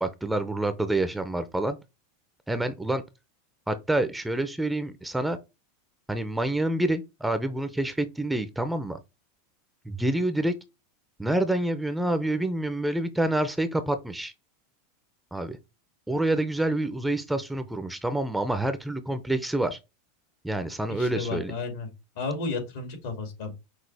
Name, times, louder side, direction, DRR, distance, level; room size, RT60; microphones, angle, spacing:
voice 1, 0.0-1.8 2.5-3.0 3.7-5.4 6.1-9.0 9.9-10.5 11.2-14.3 15.3-15.6 16.1-19.8 20.4-21.5, right 1 dB, 5° right, 0.6 m, -27 dB
voice 2, 20.9-21.9 22.2-23.5, left 3 dB, 70° left, 2.5 m, -33 dB
6.1 x 2.4 x 3.4 m
hypercardioid pair, 115°, 0 cm